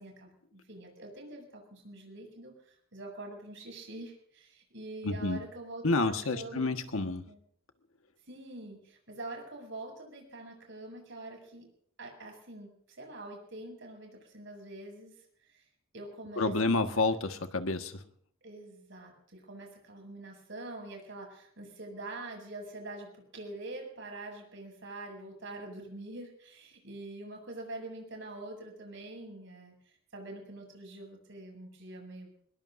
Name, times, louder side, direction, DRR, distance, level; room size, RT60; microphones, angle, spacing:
voice 1, 0.0-6.8 7.3-7.4 8.2-11.7 12.0-15.7 15.9-16.5 18.4-32.3, right 2 dB, 65° right, 1 dB, 7.4 m, -45 dB
voice 2, 5.0-5.4 5.8-7.2 16.4-18.0, left 3 dB, 90° left, 7 dB, 1.5 m, -29 dB
23.5 x 21.0 x 2.7 m, 0.63 s
head